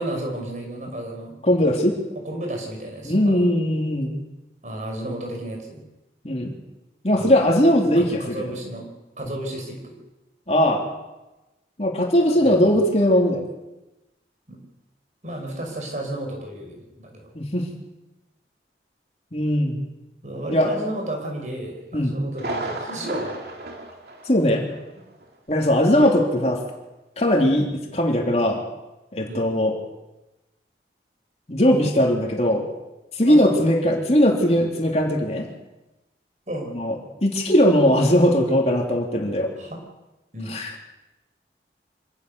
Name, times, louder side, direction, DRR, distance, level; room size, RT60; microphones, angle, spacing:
voice 1, 0.0-1.4 2.2-3.5 4.6-5.8 7.1-7.6 8.0-8.9 9.2-10.0 12.4-12.9 14.5-14.6 15.2-17.3 20.2-23.3 29.2-29.5 33.2-33.7 36.5-36.7 39.6-39.8 40.3-40.6, right 1 dB, 45° right, 2 dB, 5.6 m, -32 dB
voice 2, 1.4-1.9 3.0-4.2 6.2-6.5 7.0-8.4 10.5-10.8 11.8-13.5 17.3-17.7 19.3-19.8 20.5-20.7 21.9-22.1 24.3-24.6 25.5-26.6 27.2-28.6 29.1-29.7 31.5-32.7 33.2-35.5 36.7-36.9 37.2-39.5 40.5-40.7, equal, 35° left, 1 dB, 3.3 m, -19 dB
Thunder, 22.3-24.9 25.2-25.3 25.8-25.9, right 2 dB, 60° right, 3.1 m, -34 dB
26.0 x 18.0 x 7.0 m, 1.0 s
head